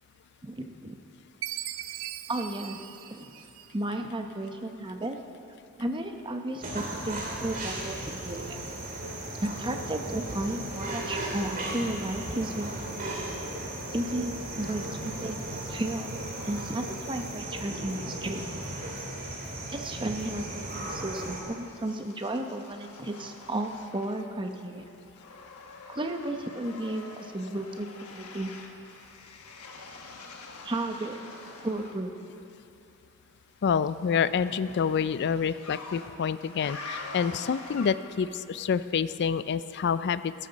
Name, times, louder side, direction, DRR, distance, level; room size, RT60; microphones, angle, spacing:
voice 1, 0.4-1.0 2.3-2.8 3.1-3.3 3.7-5.2 5.8-8.6 9.4-12.7 13.9-16.1 16.4-18.4 19.7-24.8 25.9-28.5 30.6-31.2 31.6-32.1, right 1 dB, 20° right, 4 dB, 0.8 m, -33 dB
Chime, 1.4-4.0, right 13 dB, 60° right, 0.4 m, -39 dB
sound 1, 6.6-21.4, right 1 dB, 40° right, 2.3 m, -36 dB
sound 2, 21.4-24.5 24.8-32.0 33.6-38.3, left 3 dB, 80° left, 1.2 m, -46 dB
voice 2, 33.6-40.3, left 6 dB, 50° left, 15 dB, 0.3 m, -27 dB
17.0 x 13.5 x 4.1 m, 2.7 s
head